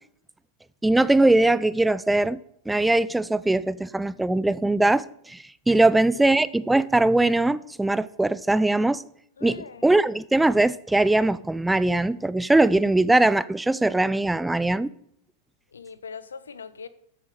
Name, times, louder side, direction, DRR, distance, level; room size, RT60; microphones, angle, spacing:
voice 1, 0.8-2.4 2.7-9.0 9.4-14.9, right 2 dB, 5° right, 0.3 m, -21 dB
voice 2, 5.8-6.4 9.4-9.9 15.7-16.9, left 6 dB, 70° left, 0.6 m, -41 dB
13.0 x 7.5 x 3.9 m
figure-of-eight pair, 90°, 0 cm